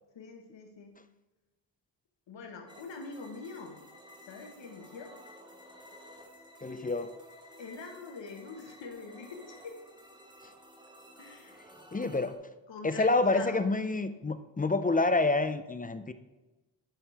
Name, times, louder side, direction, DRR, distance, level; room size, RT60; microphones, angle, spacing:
voice 1, 0.1-1.0 2.3-3.8 4.2-5.2 7.6-9.8 11.2-11.6 12.7-13.6, left 4 dB, 75° left, 4 dB, 1.5 m, -44 dB
sound 1, 2.7-12.4, equal, 10° right, 1.3 m, -53 dB
voice 2, 6.6-7.1 11.9-12.4 12.8-16.1, left 3 dB, 20° left, 11 dB, 0.5 m, -28 dB
10.5 x 6.5 x 3.4 m, 1.1 s
cardioid pair, 70°, 44 cm